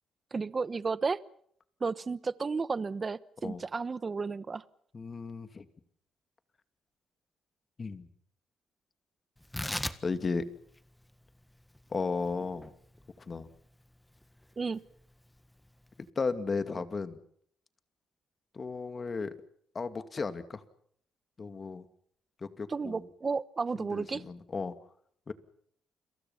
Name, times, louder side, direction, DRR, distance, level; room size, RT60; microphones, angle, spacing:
voice 1, 0.3-1.2 1.8-4.6 14.6-14.8 22.7-24.2, right 4 dB, 30° right, 17 dB, 1.1 m, -33 dB
voice 2, 4.9-5.7 7.8-8.1 10.0-10.4 11.9-12.7 13.3-13.5 16.2-17.2 18.5-19.3 19.7-20.6 21.4-21.9 22.4-23.0 23.8-24.7 25.3-25.4, left 4 dB, 35° left, 10 dB, 2.4 m, -34 dB
Tearing, 9.4-16.1, left 1 dB, 10° left, 1.6 m, -42 dB
30.0 x 23.0 x 5.7 m, 0.65 s
cardioid pair, 90°, 0 cm